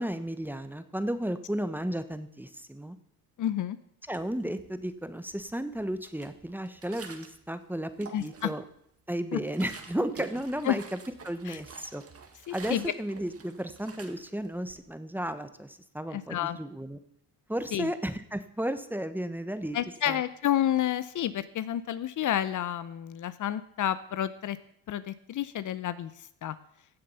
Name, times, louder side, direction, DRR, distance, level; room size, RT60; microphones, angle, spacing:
voice 1, 0.0-3.0 4.1-8.6 9.1-10.8 11.2-12.0 12.5-17.0 17.5-19.8 20.1-20.2, right 1 dB, 5° right, 11 dB, 1.1 m, -34 dB
voice 2, 3.4-3.8 8.1-8.5 9.3-9.4 10.6-10.8 11.5-11.6 12.5-12.9 16.1-16.6 17.7-17.9 19.7-24.6 24.9-26.1 26.4-26.6, left 11 dB, 50° left, 15 dB, 0.7 m, -30 dB
sound 1, 4.1-4.9 5.3-7.5 7.8-8.7 9.1-14.8, right 5 dB, 35° right, 1.8 m, -49 dB
15.5 x 7.5 x 5.6 m, 0.73 s
supercardioid pair, 80°, 38 cm